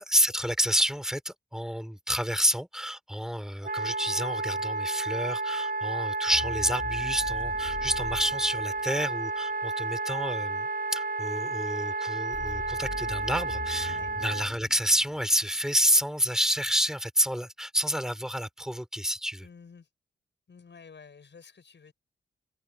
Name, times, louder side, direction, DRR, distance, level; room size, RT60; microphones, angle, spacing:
voice 1, 0.0-19.5, equal, 5° right, 4.0 m, -29 dB
Wind instrument woodwind instrument, 3.6-14.5, right 3 dB, 45° right, 1.1 m, -31 dB
sound 1, 6.3-9.3 12.3-15.8, left 3 dB, 45° left, 3.9 m, -41 dB
voice 2, 19.4-19.9 20.5-21.9, left 5 dB, 65° left, 7.5 m, -51 dB
cardioid pair, 55°, 20 cm